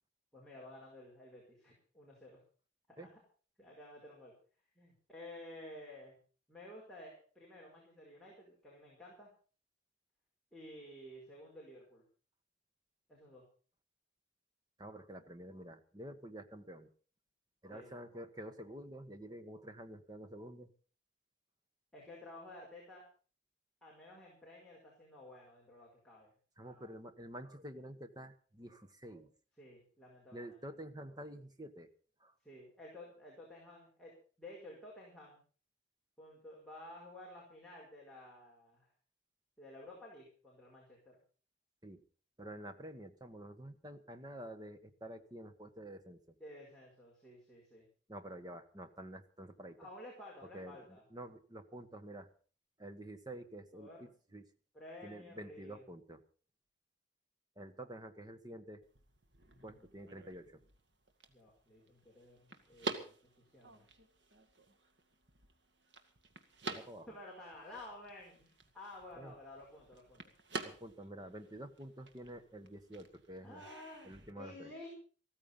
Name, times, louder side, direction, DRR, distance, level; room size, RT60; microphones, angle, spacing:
voice 1, 0.3-2.4 2.9-3.0 3.6-4.3 4.7-6.2 6.5-9.3 10.5-12.0 13.1-13.5 17.7-18.1 21.9-23.0 23.8-26.3 26.6-26.9 29.6-30.6 32.4-34.1 34.4-35.4 36.2-38.9 39.6-41.2 46.4-47.9 49.8-51.0 53.7-54.0 54.7-55.8 59.5-60.2 61.3-63.8 67.1-70.2 73.4-74.9, left 1 dB, 5° left, -5 dB, 5.1 m, -53 dB
voice 2, 14.8-16.9 17.6-20.7 26.6-29.3 30.3-31.9 32.2-32.3 41.8-42.0 42.4-46.3 48.1-49.8 50.5-52.3 52.8-54.4 55.0-56.2 57.6-58.8 59.6-60.6 66.7-67.1 69.1-69.3 70.6-73.6 74.0-74.7, right 1 dB, 20° right, 8 dB, 1.3 m, -49 dB
sound 1, 58.8-74.3, right 3 dB, 65° right, 1.9 m, -49 dB
15.0 x 14.5 x 5.5 m, 0.40 s
head